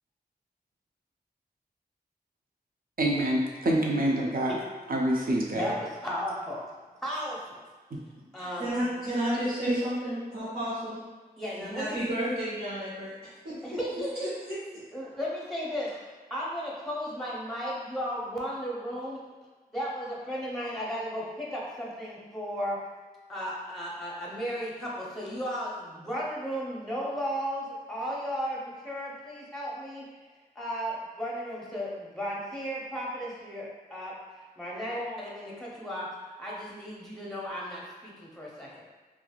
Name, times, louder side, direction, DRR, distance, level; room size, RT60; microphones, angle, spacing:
voice 1, 3.0-4.5 4.9-5.7 7.9-8.0 9.7-9.8, right 1 dB, 65° right, -1 dB, 0.5 m, -26 dB
voice 2, 5.6-6.6 7.0-7.6 8.3-8.7 11.4-12.0 13.6-14.3 14.9-16.0 16.3-19.2 19.7-22.8 23.3-30.1 30.6-34.1 34.6-36.1 36.4-38.8, equal, ahead, -5 dB, 0.7 m, -35 dB
voice 3, 8.4-11.0 11.6-13.8 14.5-14.6, equal, 85° right, -12 dB, 1.0 m, -32 dB
3.3 x 2.4 x 2.3 m, 1.3 s
wide cardioid pair, 60°, 16 cm